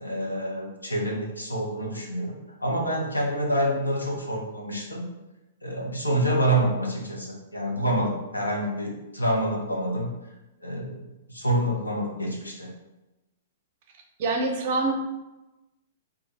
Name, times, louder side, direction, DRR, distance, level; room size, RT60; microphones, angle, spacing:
voice 1, 0.0-5.1 5.6-10.3 10.6-11.0 11.3-12.7, right 1 dB, 85° left, -1 dB, 0.7 m, -27 dB
voice 2, 14.2-14.9, right 3 dB, 45° right, 2 dB, 0.5 m, -25 dB
2.6 x 2.4 x 3.1 m, 1.0 s
figure-of-eight pair, 110°, 0 cm